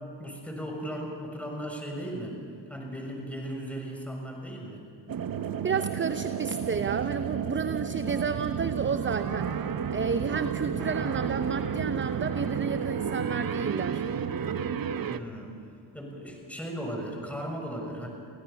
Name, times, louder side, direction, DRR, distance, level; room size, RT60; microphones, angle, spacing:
voice 1, 0.2-2.4 2.7-4.8 15.1-15.5 15.9-18.1, equal, 5° left, 1 dB, 6.6 m, -36 dB
sound 1, 5.1-15.2, right 7 dB, 50° right, 1.0 m, -31 dB
voice 2, 5.6-9.5 9.9-14.0, right 6 dB, 25° right, 11 dB, 0.8 m, -31 dB
26.0 x 16.0 x 7.1 m, 2.4 s
supercardioid pair, 50°, 46 cm